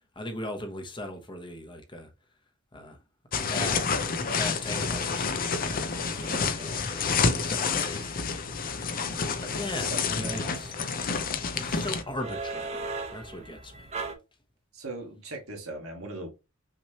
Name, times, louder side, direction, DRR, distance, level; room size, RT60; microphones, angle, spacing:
voice 1, 0.2-2.1 2.7-3.0 3.3-3.9 4.3-8.1 9.4-10.7 11.5-13.9, left 1 dB, 25° left, 1.0 m, -38 dB
sound 1, 3.3-12.0, left 5 dB, 40° left, 0.6 m, -29 dB
sound 2, 4.5-14.1, right 3 dB, 30° right, 0.9 m, -42 dB
voice 2, 6.1-6.9 7.2-7.4 9.8-10.6 14.7-16.3, right 2 dB, 75° right, 1.8 m, -40 dB
5.8 x 3.1 x 2.9 m
head